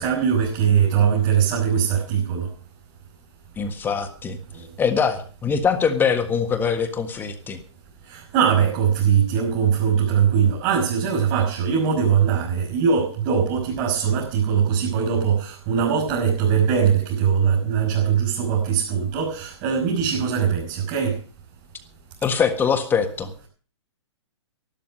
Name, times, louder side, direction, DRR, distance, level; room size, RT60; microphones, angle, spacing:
voice 1, 0.0-2.5 4.5-4.6 8.1-21.2, right 7 dB, 35° right, -3 dB, 6.1 m, -21 dB
voice 2, 3.6-4.4 4.8-7.6 22.2-23.3, left 6 dB, 15° left, 7 dB, 1.5 m, -23 dB
13.0 x 12.5 x 6.4 m, 0.41 s
hypercardioid pair, 140°, 15 cm